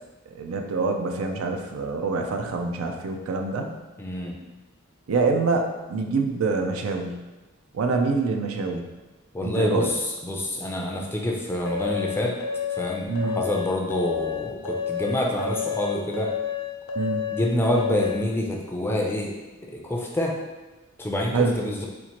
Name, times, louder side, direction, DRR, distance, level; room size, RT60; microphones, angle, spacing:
voice 1, 0.3-3.7 5.1-7.2 7.7-8.8 9.4-9.9 13.1-13.4 17.0-17.2 21.3-21.5, right 4 dB, 80° right, 4 dB, 0.4 m, -25 dB
voice 2, 4.0-4.4 9.3-12.3 12.8-16.3 17.3-19.3 19.7-20.4 21.0-21.9, left 1 dB, 10° left, -1 dB, 0.4 m, -27 dB
sound 1, 11.6-18.2, left 7 dB, 75° left, 0.5 m, -30 dB
4.3 x 2.4 x 2.9 m, 1.1 s
head